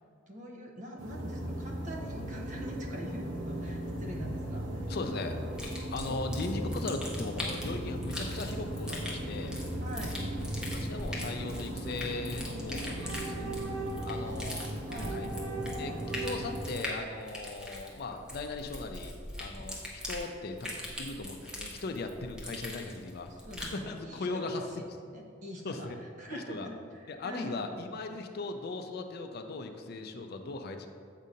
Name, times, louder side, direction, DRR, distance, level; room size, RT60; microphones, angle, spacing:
voice 1, 0.3-4.9 6.1-6.2 6.6-6.7 9.8-10.2 14.1-14.3 14.8-15.2 23.3-24.7 25.0-27.7, equal, 40° right, 0 dB, 0.7 m, -44 dB
sound 1, 1.0-16.6, right 1 dB, 80° right, 0.9 m, -37 dB
voice 2, 4.9-5.4 5.9-9.6 10.7-13.8 14.0-14.7 15.1-15.3 15.8-23.3 23.6-24.6 25.6-26.0 26.3-26.7 27.1-30.9, left 3 dB, 55° left, 6 dB, 0.4 m, -38 dB
sound 2, 5.5-23.8, left 1 dB, 5° right, 0.8 m, -42 dB
7.3 x 2.8 x 5.1 m, 2.2 s
head